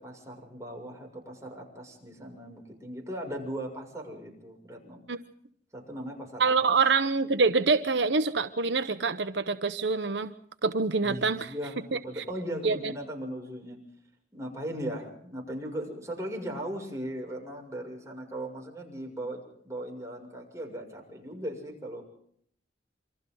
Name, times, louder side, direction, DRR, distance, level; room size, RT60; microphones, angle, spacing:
voice 1, 0.0-5.0 5.7-6.7 11.0-13.8 14.3-22.0, right 1 dB, 15° right, 0 dB, 6.9 m, -38 dB
voice 2, 6.4-10.3 10.6-11.5 12.6-12.9, right 4 dB, 80° right, 10 dB, 1.1 m, -25 dB
28.0 x 25.0 x 4.0 m, 0.66 s
head